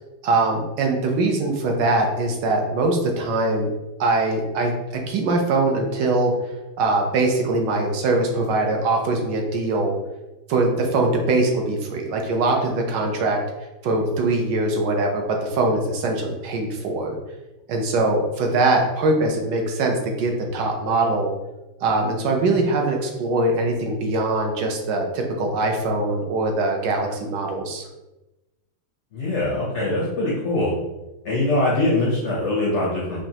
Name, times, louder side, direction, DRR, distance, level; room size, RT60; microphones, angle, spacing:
voice 1, 0.2-3.7 4.0-6.3 6.8-9.9 10.5-13.4 13.8-17.2 17.7-21.3 21.8-27.9, right 2 dB, 70° right, 2 dB, 1.2 m, -22 dB
voice 2, 29.1-30.7 31.2-33.2, left 2 dB, 65° left, -5 dB, 0.7 m, -22 dB
5.1 x 2.3 x 2.8 m, 1.0 s
omnidirectional pair, 2.0 m